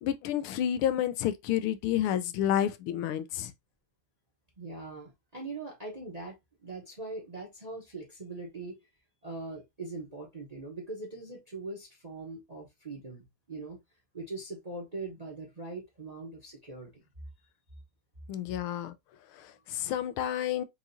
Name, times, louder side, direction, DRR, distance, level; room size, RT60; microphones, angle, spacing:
voice 1, 0.0-3.5 18.3-18.9 19.3-20.6, left 11 dB, 85° left, 1.5 m, -30 dB
voice 2, 4.6-8.8 9.2-13.8 14.1-17.0, right 3 dB, 30° right, 0.8 m, -41 dB
4.9 x 2.9 x 2.6 m
omnidirectional pair, 2.3 m